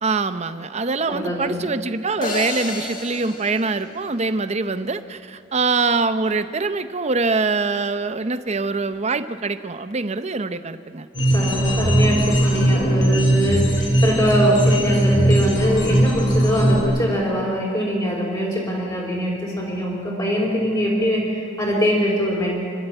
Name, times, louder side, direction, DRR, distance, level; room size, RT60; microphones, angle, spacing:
voice 1, 0.0-11.1, right 3 dB, 35° right, 11 dB, 0.7 m, -24 dB
voice 2, 1.1-1.7 11.3-22.6, equal, 25° left, -5 dB, 4.8 m, -22 dB
sound 1, 2.2-4.6, left 3 dB, 45° left, 2.3 m, -31 dB
sound 2, 11.1-16.8, right 1 dB, 85° left, 5.2 m, -19 dB
25.5 x 12.5 x 9.0 m, 2.3 s
head